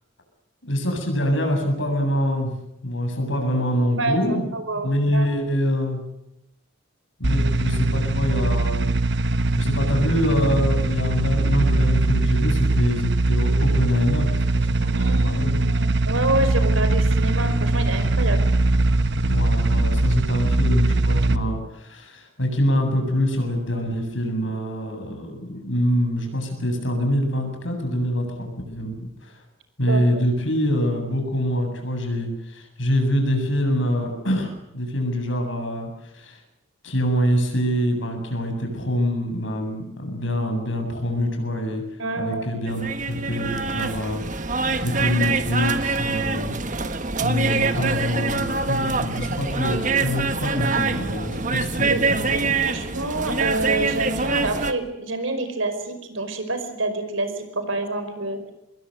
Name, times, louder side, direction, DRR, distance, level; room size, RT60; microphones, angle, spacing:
voice 1, 0.6-2.5 2.8-4.4 4.8-6.0 7.2-8.8 9.5-15.6 19.3-29.4 29.8-36.4 36.8-41.8 42.2-44.2 44.8-46.5 47.2-52.5, equal, 70° left, 4 dB, 8.0 m, -25 dB
voice 2, 4.0-5.3 15.0-18.5 29.9-30.2 42.0-42.5 47.6-47.7 51.9-52.4 52.7-58.4, right 2 dB, 80° right, 8 dB, 5.3 m, -27 dB
sound 1, 7.2-21.4, right 2 dB, 55° right, 1.2 m, -21 dB
sound 2, 42.7-54.7, right 4 dB, 40° right, 1.6 m, -25 dB
26.0 x 22.0 x 7.9 m, 0.83 s
head